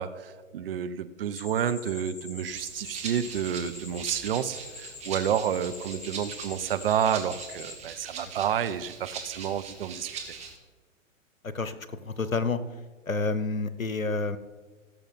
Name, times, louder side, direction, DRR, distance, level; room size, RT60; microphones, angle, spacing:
voice 1, 0.0-10.3, right 9 dB, 45° right, 11 dB, 0.7 m, -30 dB
sound 1, 1.3-7.8, left 3 dB, 35° left, 1.9 m, -45 dB
Rattle (instrument), 2.4-10.5, right 5 dB, 15° right, 1.7 m, -42 dB
voice 2, 11.4-11.8 12.0-12.6 13.1-14.4, left 3 dB, 90° left, 13 dB, 0.9 m, -29 dB
16.5 x 7.0 x 4.1 m, 1.4 s
figure-of-eight pair, 115°, 39 cm